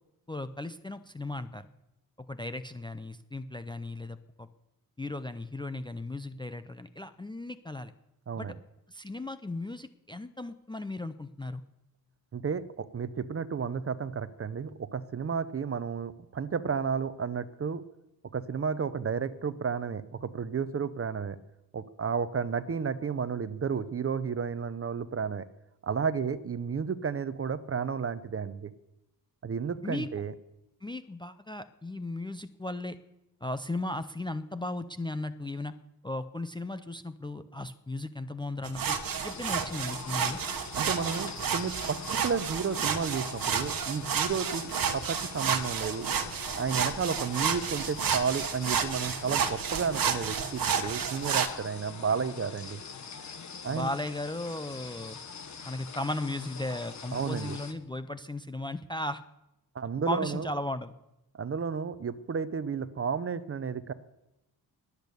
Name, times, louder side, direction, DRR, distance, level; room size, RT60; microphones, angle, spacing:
voice 1, 0.3-1.7 2.3-4.5 5.0-7.9 8.4-8.5 8.9-11.6 29.8-30.1 30.8-33.0 33.4-35.7 36.0-39.0 39.2-40.4 53.7-55.2 55.7-59.2 60.1-60.9, left 2 dB, 10° left, 10 dB, 0.4 m, -36 dB
voice 2, 12.3-17.8 18.3-21.4 21.7-25.4 25.8-28.7 29.4-30.3 40.7-46.1 46.6-52.8 53.6-53.9 57.1-57.6 59.7-60.5 61.3-63.9, right 6 dB, 35° right, 14 dB, 0.7 m, -32 dB
sound 1, 38.6-51.5, right 7 dB, 60° right, 1.2 m, -31 dB
sound 2, 39.1-57.7, left 5 dB, 45° left, 1.3 m, -44 dB
21.0 x 8.3 x 6.8 m, 0.89 s
wide cardioid pair, 150°, 39 cm